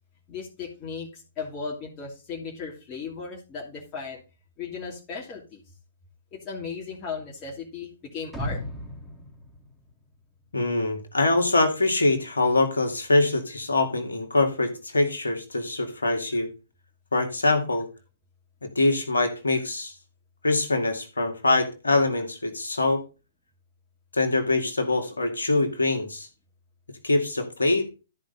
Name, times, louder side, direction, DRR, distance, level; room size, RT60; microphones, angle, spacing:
voice 1, 0.3-4.2 4.6-5.6 6.3-8.6, left 5 dB, 25° left, -4 dB, 2.9 m, -36 dB
sound 1, 8.3-10.5 10.8-10.9, equal, ahead, 3.8 m, -36 dB
voice 2, 10.5-16.5 17.1-17.9 18.6-19.9 20.4-23.0 24.1-26.3 27.0-27.9, left 2 dB, 70° left, 5 dB, 2.4 m, -24 dB
13.5 x 5.3 x 4.0 m, 0.30 s
figure-of-eight pair, 115°, 0 cm